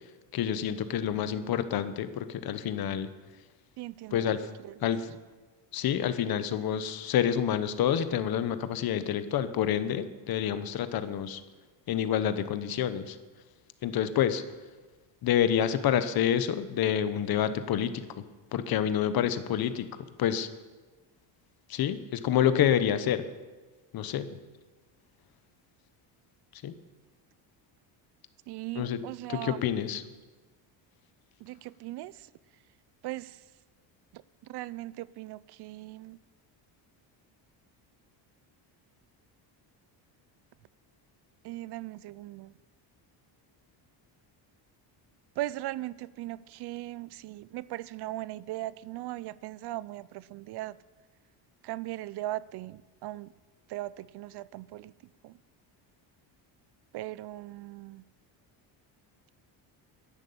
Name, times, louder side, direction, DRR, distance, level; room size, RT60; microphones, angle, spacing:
voice 1, 0.3-3.1 4.1-4.5 4.8-5.1 5.7-11.4 11.9-13.2 13.8-14.4 15.2-18.2 18.5-20.5 21.7-23.3 23.9-24.3 26.5-26.7 28.7-29.0 29.3-30.0, left 9 dB, 50° left, 12 dB, 1.0 m, -28 dB
voice 2, 3.8-4.8 28.5-29.6 31.4-32.3 33.0-33.4 34.1-36.2 41.4-42.5 45.4-50.8 51.6-53.3 53.7-54.9 55.2-55.4 56.9-58.0, right 16 dB, 60° right, 20 dB, 0.5 m, -39 dB
11.0 x 11.0 x 8.6 m, 1.3 s
cardioid pair, 150°, 46 cm